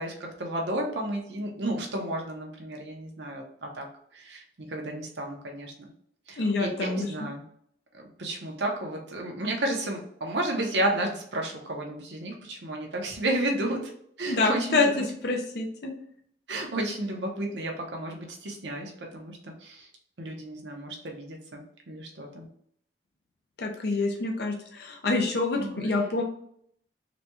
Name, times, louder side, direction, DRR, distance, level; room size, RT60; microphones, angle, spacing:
voice 1, 0.0-3.9 4.1-5.9 6.3-7.4 7.9-13.9 14.2-15.1 16.5-19.9 20.2-21.6 21.9-22.5 25.6-26.0, right 1 dB, 85° right, 1 dB, 0.9 m, -32 dB
voice 2, 6.4-7.1 14.3-14.9 15.2-15.9 23.6-26.2, left 3 dB, 65° left, 1 dB, 0.6 m, -26 dB
4.0 x 2.3 x 3.0 m, 0.66 s
head